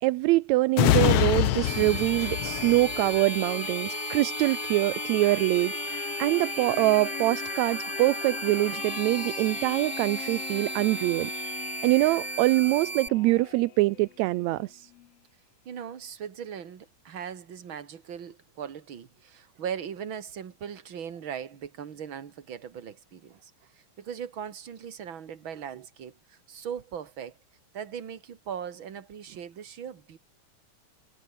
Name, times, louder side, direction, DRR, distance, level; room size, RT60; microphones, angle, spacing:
voice 1, 0.0-11.3 11.8-14.8, right 20 dB, 80° right, 1.6 m, -24 dB
sound 1, 0.7-14.1 14.5-14.6, left 14 dB, 75° left, 1.5 m, -31 dB
sound 2, 1.7-13.1, right 3 dB, 20° right, 1.5 m, -36 dB
voice 2, 15.7-27.3 27.7-30.2, right 8 dB, 45° right, 2.4 m, -39 dB
omnidirectional pair, 3.7 m